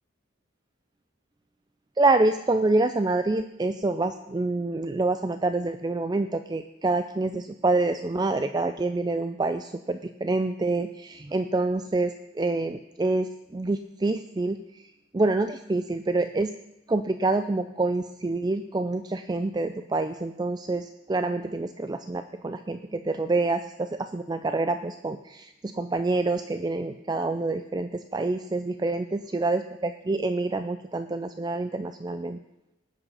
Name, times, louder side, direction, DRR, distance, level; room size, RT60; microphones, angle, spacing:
voice 1, 2.0-16.6 16.9-32.4, right 2 dB, 20° right, 9 dB, 0.4 m, -27 dB
19.0 x 8.3 x 5.4 m, 0.94 s
head